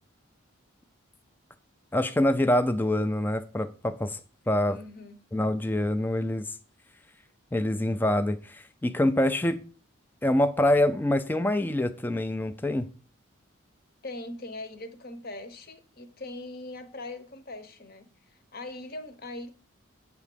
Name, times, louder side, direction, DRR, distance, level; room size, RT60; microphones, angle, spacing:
voice 1, 1.9-4.2 4.5-4.8 5.3-6.6 7.5-9.6 10.2-12.9, left 1 dB, 10° left, 0.3 m, -25 dB
voice 2, 4.7-5.2 14.0-19.5, left 2 dB, 45° left, 0.9 m, -41 dB
8.4 x 3.6 x 6.8 m
head